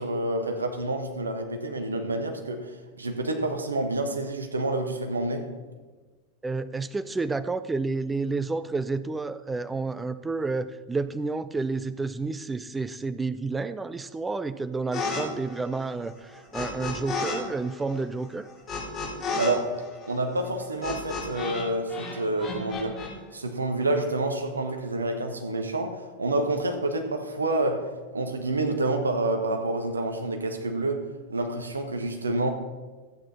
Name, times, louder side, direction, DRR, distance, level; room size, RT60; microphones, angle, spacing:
voice 1, 0.0-2.7 3.0-5.5 19.4-19.7 20.1-23.0 23.3-31.0 31.3-32.5, right 2 dB, 75° right, 5 dB, 1.3 m, -28 dB
voice 2, 6.4-18.5, right 3 dB, 10° right, 13 dB, 0.5 m, -30 dB
sound 1, 14.9-15.2 15.5-17.4 17.6-21.6 21.9-23.1, left 4 dB, 15° left, 3.7 m, -33 dB
13.5 x 8.8 x 4.2 m, 1.3 s
figure-of-eight pair, 90°, 0 cm